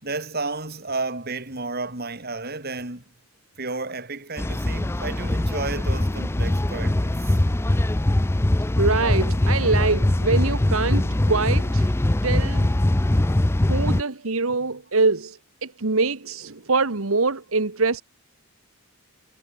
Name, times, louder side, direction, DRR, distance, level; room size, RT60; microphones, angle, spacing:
voice 1, 0.0-3.0 3.6-7.4, right 3 dB, 45° right, 4.1 m, -32 dB
sound 1, 4.4-14.0, left 1 dB, 10° left, 0.4 m, -22 dB
voice 2, 8.8-11.9 12.2-12.7 13.7-18.0, right 3 dB, 75° right, 1.5 m, -24 dB
head